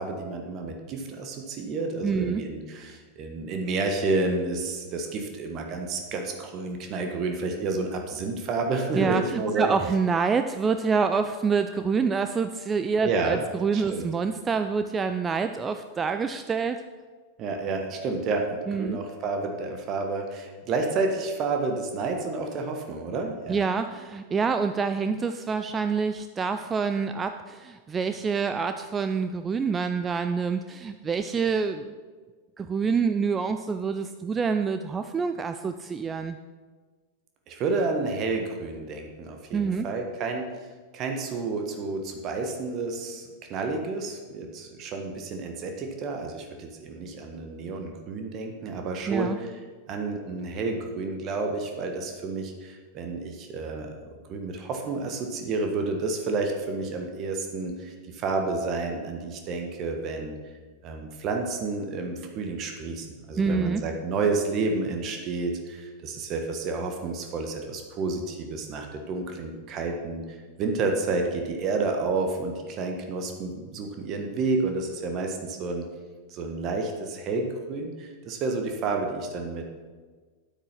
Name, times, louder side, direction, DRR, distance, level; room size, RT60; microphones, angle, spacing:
voice 1, 0.0-9.7 13.0-13.4 13.7-14.0 17.4-23.6 37.5-40.6 40.9-49.5 49.9-54.0 54.3-60.4 60.8-75.8 76.3-79.7, right 3 dB, 35° right, 4 dB, 1.4 m, -30 dB
voice 2, 2.0-2.4 8.9-16.8 18.7-19.0 23.5-31.9 32.6-36.4 39.5-39.9 49.1-49.4 63.4-63.8, right 5 dB, 20° right, 9 dB, 0.5 m, -27 dB
9.4 x 8.6 x 5.8 m, 1.4 s
figure-of-eight pair, 90°, 0 cm